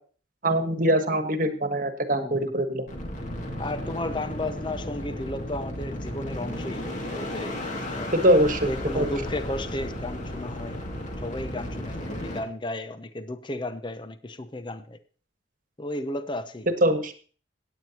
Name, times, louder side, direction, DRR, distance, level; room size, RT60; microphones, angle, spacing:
voice 1, 0.4-2.8 8.2-9.1 16.8-17.1, right 1 dB, 45° right, 1.4 m, -23 dB
voice 2, 2.1-2.5 3.6-8.1 8.7-10.8 11.2-15.0 15.8-16.7, left 1 dB, 25° left, 0.7 m, -34 dB
sound 1, 2.9-12.4, left 1 dB, 40° left, 2.3 m, -34 dB
17.5 x 9.2 x 2.9 m
head